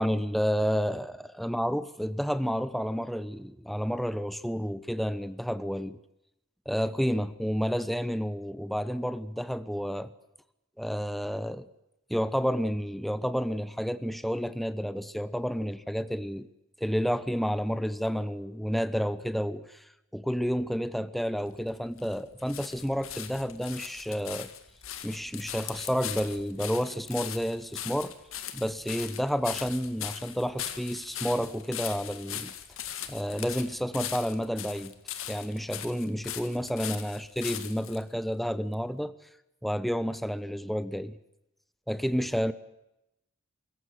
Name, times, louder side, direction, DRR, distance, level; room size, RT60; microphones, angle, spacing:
voice 1, 0.0-6.0 6.7-10.1 10.8-11.7 12.1-16.5 16.8-19.8 20.1-24.5 25.0-28.1 28.5-32.5 33.1-34.9 35.3-39.1 39.6-41.2 41.9-42.5, equal, ahead, 14 dB, 0.9 m, -30 dB
sound 1, 21.5-38.0 38.7-38.8, left 10 dB, 85° left, 2.1 m, -40 dB
24.0 x 14.5 x 9.2 m, 0.89 s
head